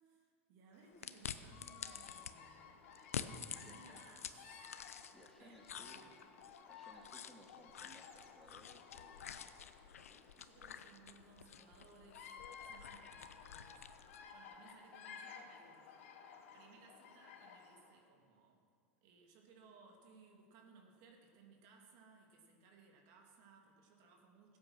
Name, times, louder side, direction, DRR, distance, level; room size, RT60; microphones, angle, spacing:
voice 1, 0.0-2.8 3.5-4.3 5.4-6.1 10.4-13.9 14.3-18.6 19.0-24.6, right 4 dB, 55° right, 1 dB, 2.5 m, -63 dB
Bird vocalization bird call bird song, 0.7-18.0, left 6 dB, 70° left, 1.4 m, -56 dB
sound 1, 1.0-2.3 2.9-5.3 5.6-14.3, left 8 dB, 85° left, 0.6 m, -49 dB
voice 2, 3.6-4.1 5.1-6.1 6.7-9.2 10.1-10.8, equal, ahead, 0 dB, 2.1 m, -63 dB
16.5 x 8.6 x 6.1 m, 2.2 s
hypercardioid pair, 100°, 8 cm